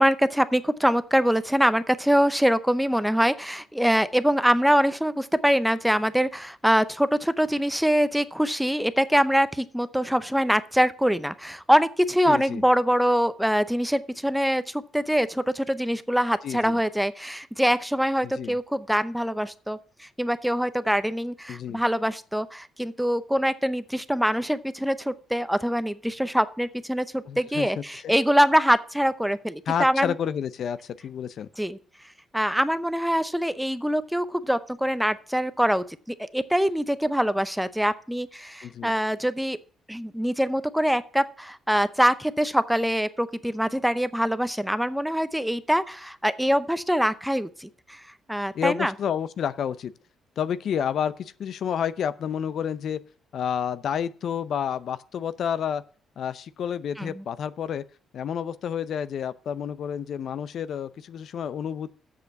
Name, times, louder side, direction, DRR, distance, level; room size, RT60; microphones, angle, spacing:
voice 1, 0.0-30.1 31.6-31.8 32.3-39.6 39.9-48.0 48.3-48.9 57.0-57.2, equal, ahead, 0.7 m, -24 dB
voice 2, 12.3-12.6 16.4-16.8 18.2-18.6 21.5-21.8 27.3-27.7 28.0-28.1 29.7-31.5 38.6-38.9 48.5-49.9 50.4-53.0 53.3-55.8 56.2-57.8 58.1-61.9, left 8 dB, 65° left, 0.5 m, -30 dB
7.5 x 6.7 x 6.9 m
cardioid pair, 90°, 0 cm